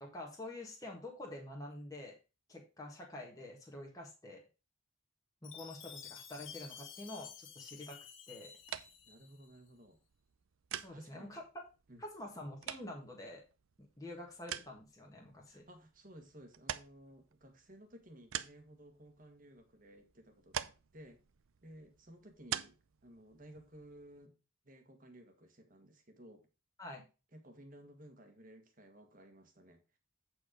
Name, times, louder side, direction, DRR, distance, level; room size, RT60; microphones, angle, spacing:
voice 1, 0.0-2.2 2.5-4.4 5.4-8.0 8.3-8.5 10.7-11.4 12.0-13.4 14.0-15.6 26.8-27.1, left 1 dB, 15° left, 1.6 m, -47 dB
Chime, 5.4-9.6, left 8 dB, 65° left, 1.6 m, -52 dB
sound 1, 8.6-24.3, right 10 dB, 75° right, 0.5 m, -48 dB
voice 2, 9.0-10.0 10.9-11.4 11.9-12.0 15.5-21.2 21.6-24.4 24.6-26.5 27.3-30.0, right 1 dB, 40° right, 1.6 m, -56 dB
8.3 x 4.8 x 5.1 m
head